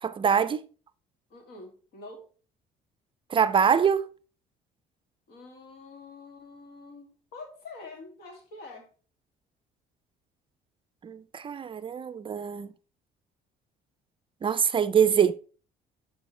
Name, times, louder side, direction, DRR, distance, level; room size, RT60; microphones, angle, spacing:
voice 1, 0.0-0.7 3.3-4.1 11.0-12.7 14.4-15.3, right 7 dB, 30° right, 0.4 m, -24 dB
voice 2, 1.3-2.2 5.3-8.9, left 3 dB, 70° left, 2.4 m, -46 dB
10.5 x 5.0 x 3.2 m
cardioid pair, 110°, 17 cm